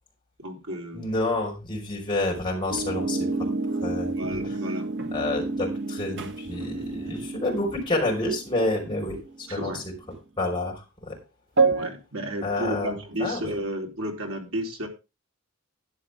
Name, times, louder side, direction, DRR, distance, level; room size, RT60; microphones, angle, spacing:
voice 1, 0.4-1.1 4.0-4.9 9.5-9.8 11.8-14.9, equal, 75° right, 1 dB, 4.0 m, -32 dB
voice 2, 0.9-3.5 3.8-4.1 5.1-9.9 10.4-11.2 12.4-12.9 13.2-13.6, left 2 dB, 20° left, -1 dB, 5.4 m, -29 dB
sound 1, 2.7-9.4 10.1-10.2 11.6-11.9, right 3 dB, 55° right, 1.7 m, -29 dB
12.0 x 10.5 x 3.7 m, 0.28 s
head